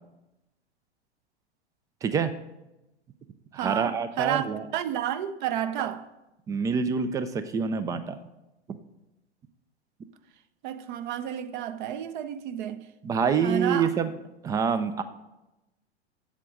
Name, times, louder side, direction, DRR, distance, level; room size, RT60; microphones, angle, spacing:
voice 1, 2.0-2.3 3.5-4.6 6.5-8.2 13.0-14.1 14.4-15.0, right 6 dB, 10° right, 0.3 m, -26 dB
voice 2, 3.6-6.1 10.6-12.8 13.4-13.9, right 10 dB, 45° right, 0.7 m, -31 dB
8.3 x 7.5 x 6.4 m
figure-of-eight pair, 95°, 33 cm